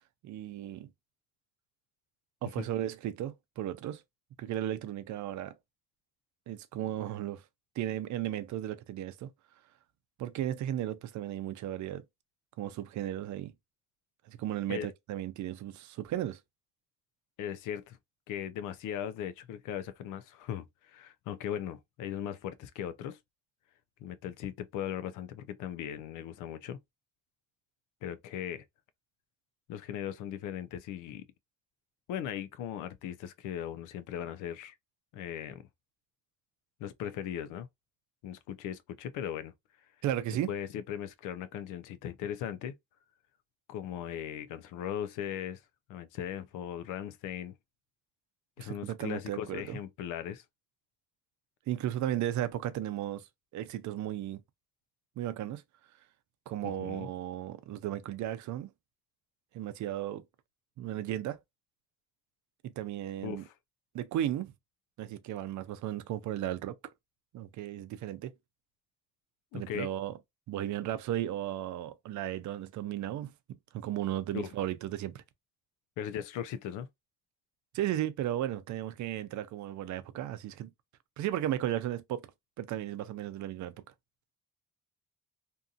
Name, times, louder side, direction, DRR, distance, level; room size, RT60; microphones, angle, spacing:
voice 1, 0.2-0.9 2.4-4.0 4.4-5.6 6.5-7.4 7.8-9.3 10.2-12.0 12.6-13.5 14.3-16.4 40.0-40.5 48.6-49.8 51.7-53.3 53.5-54.4 55.2-55.6 56.5-58.7 59.5-60.2 60.8-61.4 62.6-63.4 63.9-64.5 65.0-66.8 67.3-68.3 69.5-70.2 70.5-73.3 73.7-75.2 77.7-80.7 81.2-82.3 82.6-83.7, right 12 dB, 75° right, 0.5 m, -35 dB
voice 2, 17.4-18.0 18.3-23.2 24.0-26.8 28.0-28.6 29.7-31.3 32.1-34.7 35.1-35.7 36.8-37.7 38.2-39.5 40.5-42.8 43.7-45.6 45.9-47.6 48.6-50.4 56.6-57.1 63.2-63.5 69.5-69.9 74.3-74.5 76.0-76.9, left 10 dB, 90° left, 0.5 m, -38 dB
2.6 x 2.6 x 2.3 m
cardioid pair, 90°, 30 cm